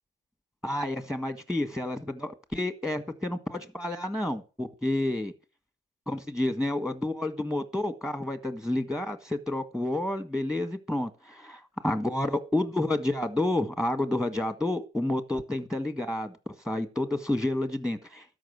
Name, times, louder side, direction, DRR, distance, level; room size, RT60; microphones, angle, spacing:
voice 1, 0.6-5.3 6.1-16.3 16.6-18.2, left 1 dB, 5° right, 10 dB, 1.6 m, -30 dB
13.0 x 5.4 x 8.1 m, 0.33 s
cardioid pair, 90°, 20 cm